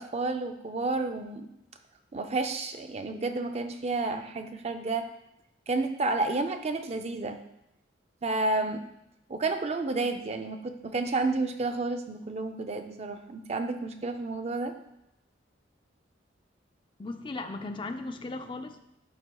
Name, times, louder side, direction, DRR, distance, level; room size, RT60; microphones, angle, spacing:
voice 1, 0.0-1.5 2.1-5.0 5.7-7.4 8.2-8.8 9.3-14.7, right 3 dB, 35° right, 6 dB, 0.4 m, -30 dB
voice 2, 17.0-18.8, left 2 dB, 25° left, 6 dB, 0.4 m, -37 dB
12.0 x 4.3 x 2.3 m, 0.83 s
head